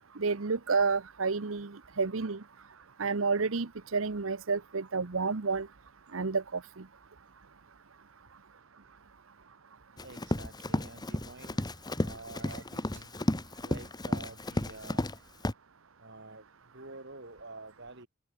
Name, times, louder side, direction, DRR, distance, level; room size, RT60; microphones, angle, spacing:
voice 1, 0.2-1.7 2.0-2.4 3.0-5.7 6.1-6.6, right 4 dB, 80° right, 0.9 m, -30 dB
Run, 10.0-15.2 15.4-15.5, left 1 dB, 20° left, 1.3 m, -33 dB
voice 2, 10.0-11.7 12.0-13.1 13.6-15.1 16.0-16.4 16.7-18.1, right 2 dB, 60° right, 5.8 m, -48 dB
head